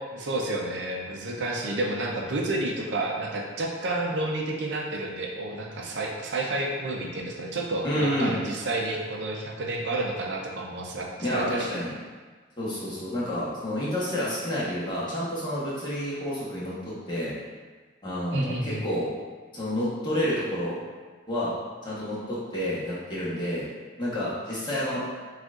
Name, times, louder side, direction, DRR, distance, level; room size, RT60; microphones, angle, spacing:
voice 1, 0.0-11.7 18.3-18.8, right 2 dB, 70° right, -1 dB, 0.5 m, -30 dB
voice 2, 7.8-8.3 11.2-11.9 12.6-16.8 17.1-17.3 18.0-19.1 19.5-20.8 21.3-21.5 21.8-23.7 24.0-25.0, equal, 25° left, -9 dB, 1.0 m, -29 dB
6.1 x 2.4 x 2.4 m, 1.4 s
head